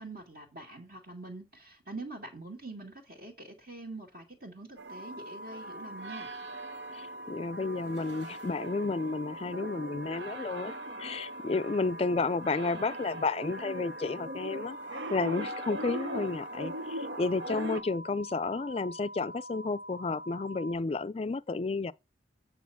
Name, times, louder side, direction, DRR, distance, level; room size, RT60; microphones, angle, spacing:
voice 1, 0.0-6.3, right 2 dB, 55° right, 2.1 m, -44 dB
sound 1, 4.8-17.8, right 1 dB, 80° right, 0.9 m, -41 dB
sound 2, 4.9-20.8, equal, 35° right, 1.3 m, -45 dB
voice 2, 6.9-14.8 15.1-21.9, left 3 dB, 35° left, 0.4 m, -32 dB
8.6 x 3.9 x 7.0 m
head